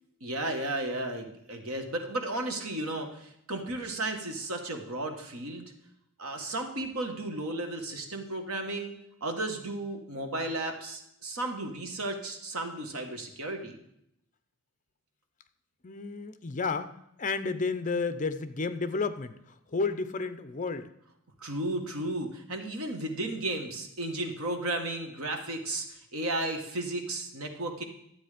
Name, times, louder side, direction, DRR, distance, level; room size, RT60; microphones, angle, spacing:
voice 1, 0.2-5.6 6.2-8.9 9.2-13.8 21.4-27.8, right 2 dB, 85° right, 4 dB, 1.6 m, -34 dB
voice 2, 15.8-19.3 19.7-20.9, left 4 dB, 35° left, 11 dB, 0.6 m, -31 dB
12.0 x 8.2 x 5.0 m, 0.77 s
head